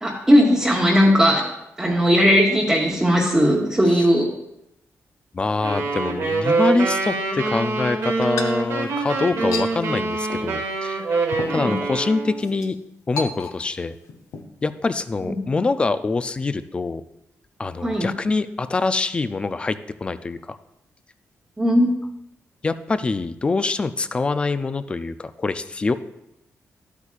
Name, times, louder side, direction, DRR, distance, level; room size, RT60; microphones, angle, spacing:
voice 1, 0.0-1.5 1.8-4.3 11.6-11.7 17.8-18.1 21.6-21.9, equal, 10° right, -3 dB, 1.0 m, -17 dB
voice 2, 5.3-11.2 11.5-12.8 13.1-13.9 14.6-17.0 17.6-20.6 22.6-25.9, left 3 dB, 20° left, 13 dB, 0.3 m, -24 dB
sound 1, 5.6-12.4, right 3 dB, 75° right, 1.6 m, -25 dB
sound 2, 8.2-9.7 10.3-10.5 10.9-11.0 11.3-11.9 12.4-12.7 13.2-13.8 14.1-14.4, left 5 dB, 80° left, 0.9 m, -33 dB
12.5 x 8.2 x 2.4 m, 0.84 s
wide cardioid pair, 180°, 5 cm